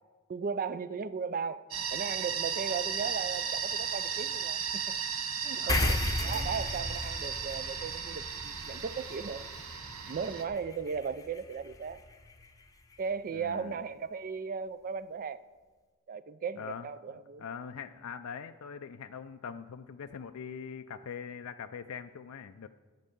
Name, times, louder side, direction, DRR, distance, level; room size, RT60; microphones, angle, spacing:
voice 1, 0.3-1.6 1.9-5.0 5.4-9.5 10.1-12.0 13.0-15.4 16.1-17.4, right 5 dB, 40° right, 15 dB, 0.4 m, -36 dB
sound 1, 1.7-10.4, right 7 dB, 70° right, 1.1 m, -35 dB
voice 2, 5.6-5.9 13.3-13.8 16.6-16.9 17.4-22.7, left 6 dB, 70° left, 8 dB, 0.4 m, -42 dB
sound 2, 5.7-12.5, left 2 dB, 15° left, 0.7 m, -36 dB
13.5 x 5.4 x 8.3 m, 1.4 s
head